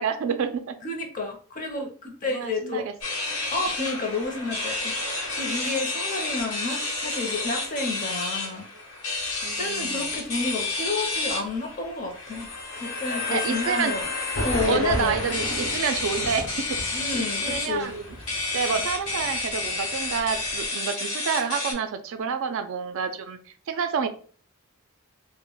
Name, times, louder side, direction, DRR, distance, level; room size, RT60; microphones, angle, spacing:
voice 1, 0.0-0.8 2.2-2.9 9.4-10.1 13.3-13.9 14.7-18.0 18.5-23.4 23.7-24.1, right 6 dB, 60° right, 9 dB, 0.3 m, -28 dB
voice 2, 0.8-2.8 3.5-8.7 9.6-12.5 12.8-14.1 14.4-15.2 16.9-18.0 18.7-18.8, left 3 dB, 35° left, 3 dB, 0.6 m, -30 dB
sound 1, 3.0-21.7, left 3 dB, 90° left, 1.0 m, -30 dB
sound 2, 9.2-10.9 11.1-11.6 11.8-11.9 12.3-12.4 13.9-20.7, equal, 60° left, 0.9 m, -36 dB
2.1 x 2.1 x 3.8 m, 0.43 s
head